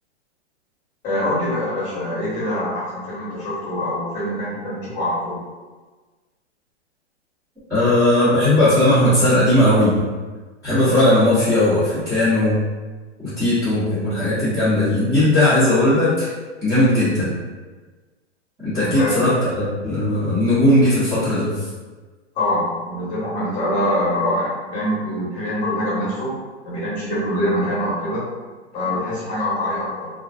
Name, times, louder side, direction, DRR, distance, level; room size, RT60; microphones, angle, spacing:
voice 1, 1.0-5.4 18.8-19.2 22.3-26.3 26.6-28.2 28.7-30.1, left 1 dB, 20° left, -8 dB, 1.0 m, -24 dB
voice 2, 7.7-10.0 10.6-12.6 13.4-16.3 16.6-17.3 18.6-21.6, left 1 dB, 5° right, -17 dB, 0.8 m, -17 dB
2.5 x 2.2 x 2.4 m, 1.3 s
hypercardioid pair, 140°, 35 cm